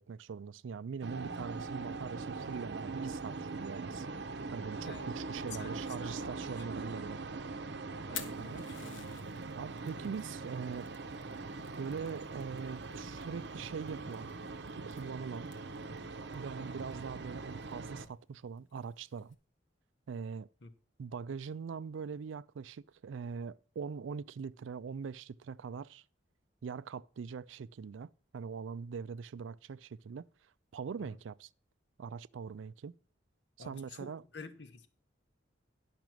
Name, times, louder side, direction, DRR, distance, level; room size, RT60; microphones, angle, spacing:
voice 1, 0.0-4.1 4.5-7.2 8.4-8.7 9.5-10.9 11.8-14.3 14.7-15.5 16.3-19.4 20.1-20.5 21.0-26.0 26.6-30.3 30.7-31.5 32.0-32.9 33.6-34.2, right 6 dB, 80° right, 0.4 m, -42 dB
sound 1, 1.0-18.1, right 3 dB, 60° right, 0.7 m, -42 dB
voice 2, 4.8-5.7 6.0-6.6 8.1-9.0 16.6-16.7 20.6-20.7 31.0-31.1 33.6-34.9, left 3 dB, 60° left, 1.1 m, -50 dB
Fire, 7.9-19.3, left 8 dB, 85° left, 1.4 m, -53 dB
10.5 x 6.0 x 6.1 m
head